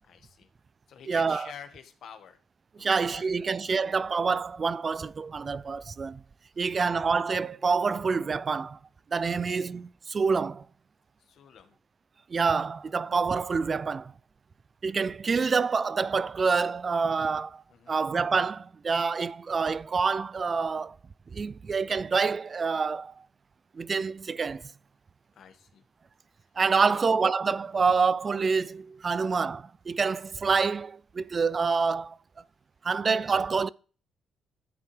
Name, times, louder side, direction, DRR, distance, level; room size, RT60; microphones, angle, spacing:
voice 1, 0.0-0.5 0.9-2.4 2.8-3.5 6.7-6.8 9.3-9.7 11.3-11.7 17.7-18.0 25.3-25.8 26.8-27.0, left 8 dB, 70° left, 1.3 m, -49 dB
voice 2, 1.1-1.5 2.8-6.2 6.6-8.8 9.1-10.6 12.3-14.1 14.8-21.0 21.3-23.2 23.7-24.7 26.6-32.2 32.8-33.7, right 5 dB, 40° right, 0.3 m, -27 dB
11.0 x 7.6 x 3.2 m
cardioid pair, 90°, 0 cm